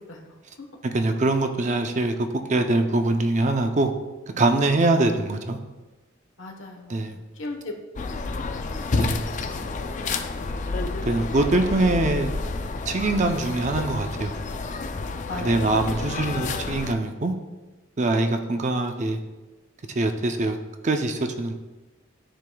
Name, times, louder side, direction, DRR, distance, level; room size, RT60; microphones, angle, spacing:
voice 1, 0.0-0.7 6.4-7.7 8.0-8.3 9.4-11.3 15.3-16.0, left 2 dB, 85° left, 2 dB, 1.2 m, -40 dB
voice 2, 0.8-3.9 4.4-5.6 6.9-7.2 8.9-9.3 11.1-12.3 12.9-14.3 15.4-17.3 18.0-19.2 19.9-20.6 20.8-21.5, right 2 dB, 40° right, 6 dB, 0.6 m, -23 dB
sound 1, 8.0-16.9, left 3 dB, 40° left, 0.4 m, -30 dB
12.5 x 4.9 x 2.3 m, 1.2 s
head